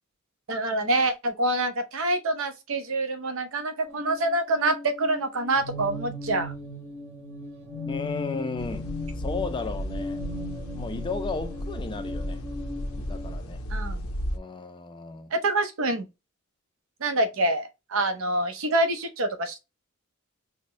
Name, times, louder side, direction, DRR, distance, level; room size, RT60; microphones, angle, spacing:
voice 1, 0.5-6.5 13.7-14.0 15.3-16.1 17.0-19.6, right 2 dB, 65° right, 0.7 m, -26 dB
sound 1, 3.8-13.3, left 2 dB, 10° right, 1.2 m, -37 dB
voice 2, 7.9-10.2 10.7-12.4 13.0-13.6 14.3-15.3, left 4 dB, 20° left, 0.3 m, -34 dB
sound 2, 8.6-14.4, equal, 85° left, 0.5 m, -34 dB
4.2 x 2.1 x 2.9 m
head